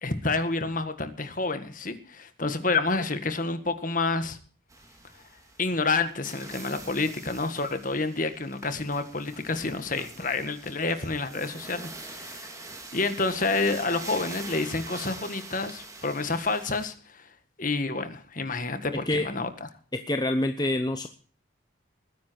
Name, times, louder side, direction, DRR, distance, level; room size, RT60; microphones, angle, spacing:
voice 1, 0.0-4.4 5.6-12.5 12.9-19.5, left 3 dB, 40° left, 9 dB, 1.8 m, -29 dB
sound 1, 4.7-16.9, right 2 dB, 15° right, 2.4 m, -44 dB
voice 2, 19.9-21.1, left 1 dB, 20° left, 7 dB, 0.9 m, -26 dB
20.0 x 10.5 x 4.6 m, 0.42 s
head